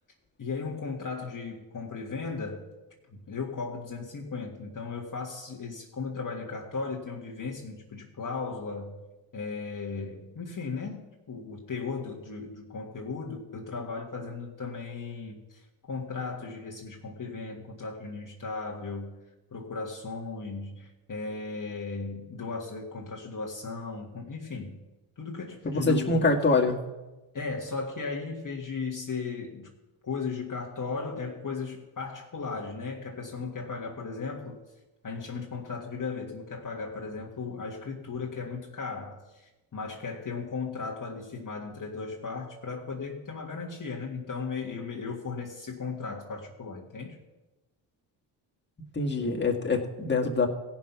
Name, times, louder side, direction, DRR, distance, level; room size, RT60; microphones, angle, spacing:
voice 1, 0.4-2.7 3.1-9.0 9.3-19.2 19.5-24.8 25.2-26.4 27.3-29.7 30.0-34.6 35.0-47.2, left 4 dB, 40° left, -2 dB, 1.7 m, -36 dB
voice 2, 25.6-26.8 48.9-50.5, left 3 dB, 20° left, -1 dB, 2.0 m, -25 dB
16.0 x 5.7 x 5.9 m, 1.1 s
supercardioid pair, 60°, 50 cm